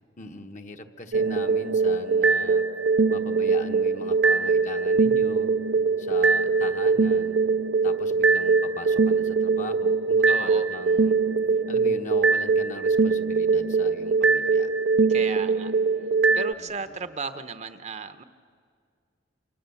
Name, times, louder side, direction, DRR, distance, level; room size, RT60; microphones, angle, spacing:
voice 1, 0.2-2.6 3.1-5.5 6.0-7.4 7.8-11.2 11.7-14.7 16.6-17.0, left 2 dB, 40° left, 5 dB, 1.2 m, -41 dB
sound 1, 1.1-16.5, right 4 dB, 75° right, 0.6 m, -22 dB
voice 2, 10.3-10.7 15.0-15.7 16.3-18.2, right 4 dB, 40° right, 10 dB, 0.9 m, -35 dB
28.5 x 27.0 x 7.1 m, 2.2 s
head